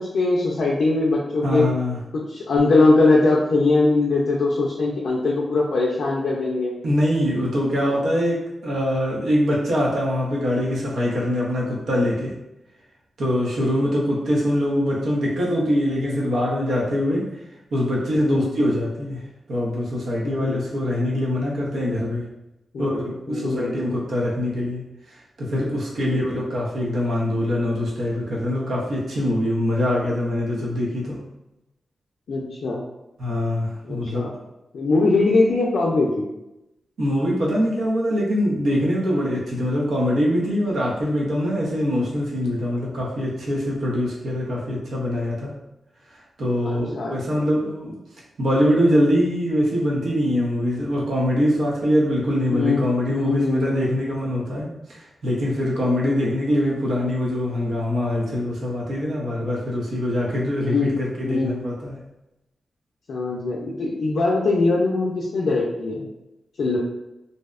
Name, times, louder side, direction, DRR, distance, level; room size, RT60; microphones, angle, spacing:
voice 1, 0.0-1.7 2.1-6.7 7.9-8.0 13.6-13.7 18.2-18.5 20.2-20.6 22.7-23.0 23.3-23.7 26.0-26.2 32.3-32.8 33.9-34.3 34.7-36.3 46.6-47.4 52.5-53.9 56.1-56.3 60.6-61.0 61.2-61.6 63.1-66.1 66.6-66.8, left 3 dB, 80° left, -4 dB, 0.4 m, -21 dB
voice 2, 1.4-2.0 6.8-12.4 13.2-17.3 17.7-22.3 22.8-24.9 25.4-31.2 33.2-34.3 37.0-45.6 46.4-48.0 48.4-62.0, equal, 85° right, -4 dB, 0.7 m, -23 dB
2.6 x 2.0 x 2.3 m, 0.92 s
cardioid pair, 85°, 0 cm